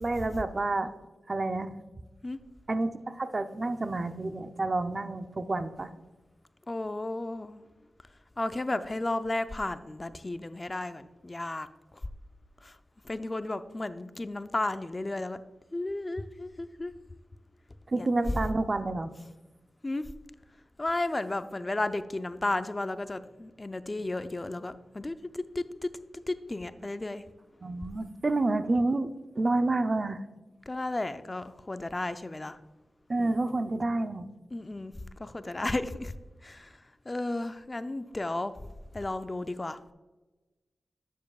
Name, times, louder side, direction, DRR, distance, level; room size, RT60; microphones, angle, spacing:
voice 1, 0.0-0.9 1.3-1.7 2.7-5.9 17.9-19.1 27.6-30.2 33.1-34.3, right 2 dB, 45° right, 10 dB, 0.6 m, -29 dB
voice 2, 6.7-7.6 8.4-12.0 12.6-12.8 13.0-15.4 15.7-16.9 17.9-18.1 19.8-20.1 20.8-27.2 30.7-32.6 33.2-33.4 34.5-36.1 36.4-38.5 38.9-39.8, left 2 dB, 30° left, 11 dB, 0.5 m, -34 dB
11.0 x 7.4 x 2.4 m, 1.1 s
cardioid pair, 45°, 0 cm